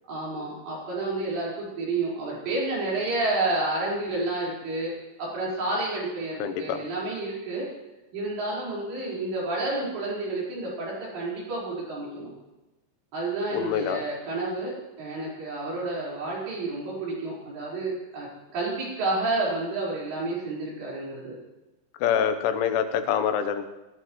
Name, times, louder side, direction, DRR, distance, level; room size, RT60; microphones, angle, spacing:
voice 1, 0.1-7.7 8.1-12.3 13.1-18.3 18.5-21.3, right 2 dB, 70° right, -5 dB, 6.9 m, -30 dB
voice 2, 6.4-6.8 13.5-14.0 22.0-23.7, left 8 dB, 90° left, 8 dB, 3.5 m, -25 dB
21.5 x 13.5 x 3.2 m, 1.0 s
omnidirectional pair, 5.3 m